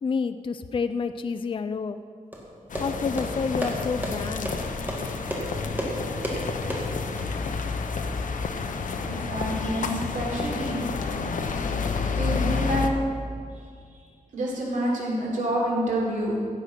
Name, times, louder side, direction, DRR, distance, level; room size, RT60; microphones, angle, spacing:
voice 1, 0.0-2.0 2.8-4.6, left 5 dB, 40° left, 10 dB, 0.4 m, -29 dB
sound 1, 2.3-7.3, equal, 15° right, 2.1 m, -33 dB
sound 2, 2.7-12.9, left 4 dB, 70° left, 0.8 m, -30 dB
voice 2, 9.0-11.1 12.1-12.9 13.9-14.0 14.3-16.3, right 1 dB, 75° right, -4 dB, 3.7 m, -28 dB
16.0 x 7.8 x 5.8 m, 2.2 s
wide cardioid pair, 135°, 14 cm